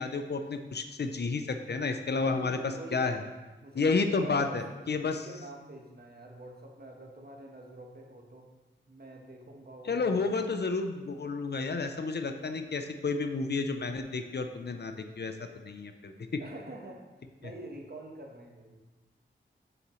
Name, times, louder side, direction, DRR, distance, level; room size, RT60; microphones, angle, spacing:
voice 1, 0.0-2.6 2.9-3.2 3.7-5.3 9.9-16.4, left 4 dB, 55° left, 7 dB, 0.6 m, -31 dB
voice 2, 2.1-3.1 3.6-8.5 8.9-10.2 16.4-17.0 17.4-18.8, right 1 dB, 50° right, 1 dB, 1.2 m, -46 dB
7.1 x 6.8 x 3.1 m, 1.2 s
wide cardioid pair, 60°, 20 cm